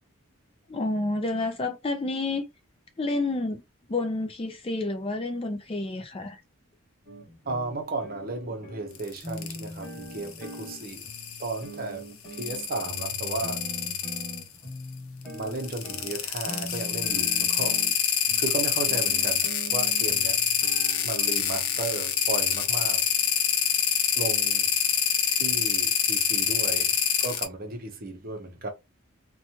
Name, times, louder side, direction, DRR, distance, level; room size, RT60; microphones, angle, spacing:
voice 1, 0.7-2.4 3.0-3.6 3.9-6.4, left 2 dB, 25° left, 0.4 m, -29 dB
sound 1, 7.1-23.3, equal, ahead, 1.4 m, -42 dB
voice 2, 7.5-11.1 11.4-13.6 15.3-17.8 18.4-20.4 21.0-23.0 24.2-24.7 25.3-28.7, right 3 dB, 45° right, 0.6 m, -34 dB
sound 2, 9.0-9.6 10.3-11.6 12.3-14.4 15.5-27.5, left 8 dB, 80° left, 0.6 m, -25 dB
2.9 x 2.2 x 2.7 m
head